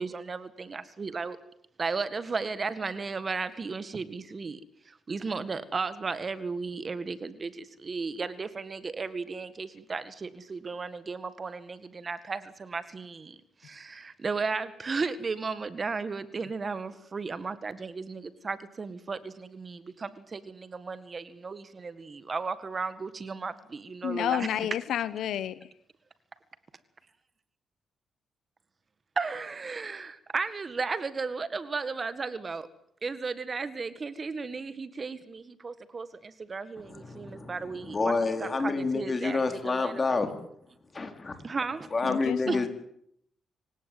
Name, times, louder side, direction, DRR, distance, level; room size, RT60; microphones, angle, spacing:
voice 1, 0.0-1.4 1.8-4.6 4.9-24.5 29.2-32.7 33.0-38.1 38.4-39.9 41.4-41.9 42.5-42.6, right 4 dB, 35° right, 1.9 m, -35 dB
voice 2, 24.0-25.6 42.1-42.7, left 10 dB, 85° left, 1.2 m, -30 dB
voice 3, 36.8-40.3 40.6-41.4 41.9-42.7, left 3 dB, 30° left, 4.5 m, -29 dB
26.5 x 17.0 x 9.5 m
cardioid pair, 95°, 0 cm